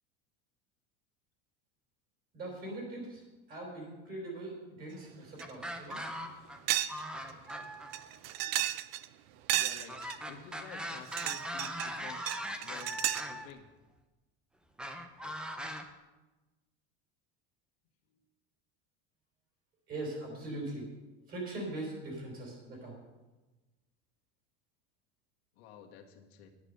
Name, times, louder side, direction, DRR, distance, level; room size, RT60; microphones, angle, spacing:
voice 1, 2.3-3.2 3.5-6.0 19.9-20.9 21.3-23.0, right 2 dB, 30° right, 0 dB, 4.3 m, -41 dB
sound 1, 5.4-6.6 6.9-8.1 9.9-13.5 14.8-15.8, equal, 5° right, 0.5 m, -40 dB
sound 2, 5.4-5.5 5.9-6.0 6.7-7.0 7.3-7.4 7.9-9.1 9.5-10.2 10.9-11.9 12.3-13.3, right 14 dB, 75° right, 0.6 m, -33 dB
voice 2, 9.5-12.3 12.6-13.7 25.6-26.5, left 8 dB, 85° left, 2 dB, 1.7 m, -51 dB
10.0 x 9.5 x 6.7 m, 1.1 s
cardioid pair, 175°, 30 cm